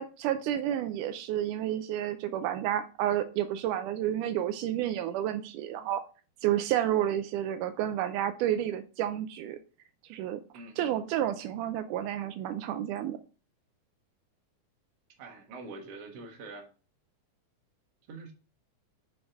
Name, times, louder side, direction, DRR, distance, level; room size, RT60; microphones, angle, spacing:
voice 1, 0.0-6.0 6.4-9.6 10.1-10.4 10.8-13.2, right 11 dB, 85° right, 2.1 m, -30 dB
voice 2, 10.5-11.0 15.2-16.7 18.1-18.3, right 3 dB, 55° right, 2.1 m, -45 dB
6.5 x 5.1 x 3.6 m
omnidirectional pair, 3.6 m